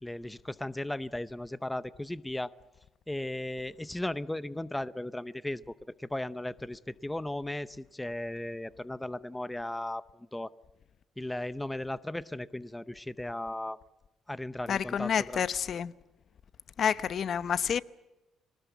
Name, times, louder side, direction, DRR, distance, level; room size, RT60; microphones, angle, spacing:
voice 1, 0.0-2.5 3.1-5.7 6.0-10.5 11.2-13.8 14.3-15.4, left 1 dB, 10° left, 0.7 m, -36 dB
voice 2, 14.7-15.9 16.8-17.8, left 8 dB, 55° left, 0.8 m, -29 dB
24.0 x 19.5 x 8.2 m
cardioid pair, 100°, 0 cm